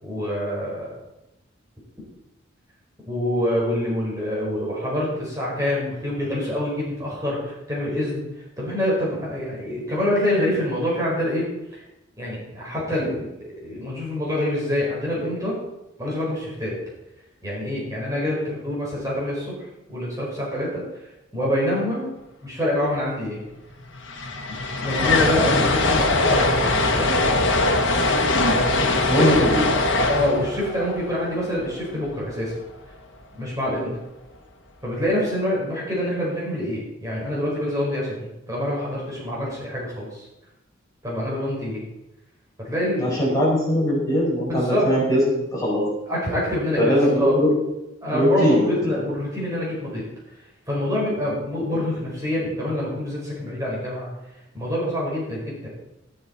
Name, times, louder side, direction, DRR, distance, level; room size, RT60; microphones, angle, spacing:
voice 1, 0.0-0.9 3.0-8.2 8.6-11.4 11.7-11.8 12.2-13.3 13.6-15.6 16.0-16.7 17.4-20.8 21.3-22.1 22.4-23.4 24.2-24.3 24.8-27.4 28.5-29.2 30.1-32.6 33.4-33.9 34.8-40.3 41.0-41.8 42.6-43.2 44.5-44.9 46.1-47.3 48.0-50.0 50.7-54.1 54.5-55.7, left 1 dB, 15° right, -5 dB, 4.8 m, -26 dB
sound 1, 23.5-23.6 23.8-32.0, left 2 dB, 65° left, 1.7 m, -21 dB
voice 2, 29.1-29.7 43.0-45.8 46.8-47.5 48.1-48.8, equal, 20° left, -5 dB, 5.7 m, -20 dB
14.0 x 12.0 x 4.4 m, 0.92 s
head